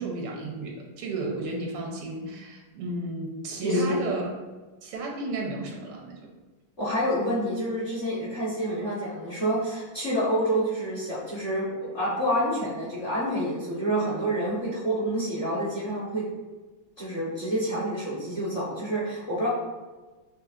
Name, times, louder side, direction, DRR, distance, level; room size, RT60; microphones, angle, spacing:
voice 1, 0.0-4.3 4.8-6.2, right 2 dB, 85° right, 0 dB, 1.8 m, -33 dB
voice 2, 3.6-4.0 6.8-16.2 17.0-19.5, equal, 35° left, -7 dB, 1.1 m, -28 dB
6.7 x 3.2 x 2.5 m, 1.3 s
omnidirectional pair, 2.4 m